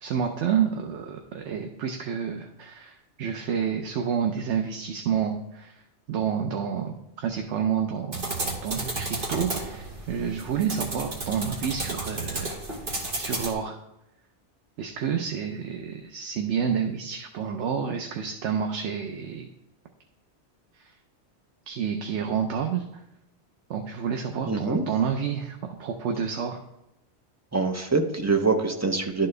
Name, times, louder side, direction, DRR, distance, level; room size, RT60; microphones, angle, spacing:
voice 1, 0.0-5.8 6.1-12.6 12.9-13.8 14.8-19.5 20.8-20.9 21.7-23.0 23.7-26.6, right 7 dB, 85° right, 4 dB, 1.0 m, -29 dB
sound 1, 8.1-13.5, right 2 dB, 50° right, 1.5 m, -33 dB
voice 2, 24.5-24.8 27.5-29.3, right 4 dB, 25° right, 4 dB, 0.4 m, -24 dB
11.5 x 4.4 x 3.2 m, 0.88 s
omnidirectional pair, 1.2 m